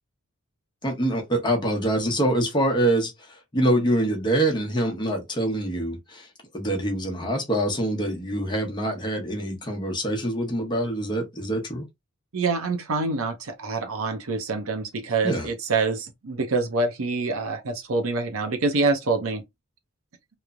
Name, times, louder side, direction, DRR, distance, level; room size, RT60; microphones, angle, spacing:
voice 1, 0.8-3.1 3.5-6.3 6.5-11.9 15.2-15.5, right 1 dB, 20° left, 0.7 m, -25 dB
voice 2, 12.3-19.4, right 3 dB, 70° right, 0.6 m, -26 dB
3.0 x 2.0 x 2.4 m
head